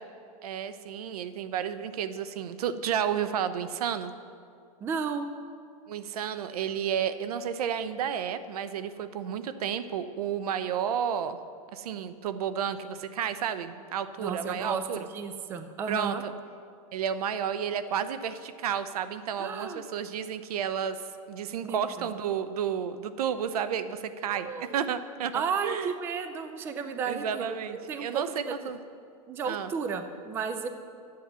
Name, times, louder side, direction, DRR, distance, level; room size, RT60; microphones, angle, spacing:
voice 1, 0.4-4.1 5.9-11.4 11.7-15.0 15.9-16.3 16.9-25.3 25.6-25.9 27.1-28.8 29.5-29.7, right 8 dB, 80° right, 12 dB, 0.7 m, -31 dB
voice 2, 4.8-5.3 14.2-16.2 19.4-19.8 21.6-22.1 24.2-24.9 25.3-27.6 27.9-28.7 29.3-30.7, right 6 dB, 10° right, 8 dB, 0.3 m, -33 dB
9.5 x 7.7 x 6.8 m, 2.4 s
supercardioid pair, 155°, 19 cm